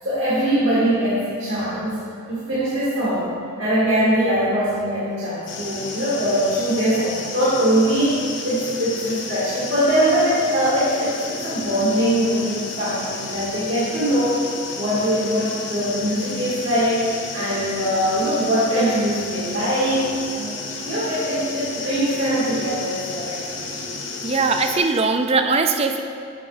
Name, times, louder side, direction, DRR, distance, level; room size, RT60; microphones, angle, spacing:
voice 1, 0.0-2.0 2.3-14.5 14.7-17.0 17.3-20.5 20.8-23.6, equal, 70° right, -9 dB, 1.9 m, -22 dB
sound 1, 5.5-24.8, left 3 dB, 60° left, 0.9 m, -32 dB
voice 2, 24.2-26.0, right 4 dB, 30° right, 6 dB, 0.4 m, -20 dB
7.3 x 6.0 x 5.0 m, 2.3 s
head